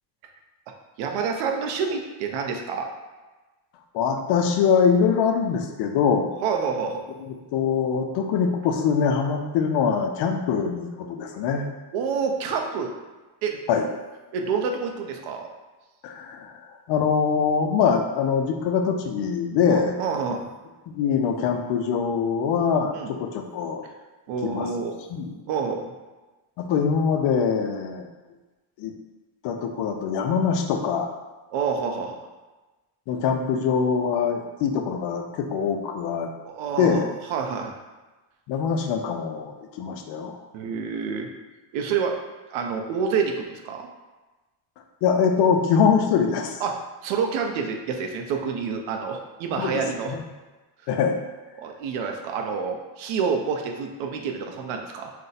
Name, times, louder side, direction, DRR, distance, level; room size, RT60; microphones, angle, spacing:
voice 1, 0.7-2.9 6.4-7.0 11.9-12.9 13.4-13.6 14.3-15.5 19.7-20.5 22.9-23.1 24.3-25.0 25.5-25.9 31.5-32.2 36.4-37.0 37.3-37.7 40.5-41.3 41.7-42.2 42.5-43.9 46.6-50.1 51.6-55.1, right 5 dB, 85° right, 4 dB, 0.6 m, -28 dB
voice 2, 3.9-6.3 7.5-11.7 13.7-13.9 16.0-16.6 16.9-20.0 20.9-23.8 24.4-24.7 25.1-25.3 26.6-28.1 28.8-28.9 29.4-31.1 33.1-36.3 36.8-37.1 38.5-40.4 45.0-46.6 49.5-50.2 50.9-51.2, left 6 dB, 70° left, 4 dB, 0.5 m, -23 dB
2.5 x 2.1 x 4.0 m, 1.2 s
cardioid pair, 140°, 45 cm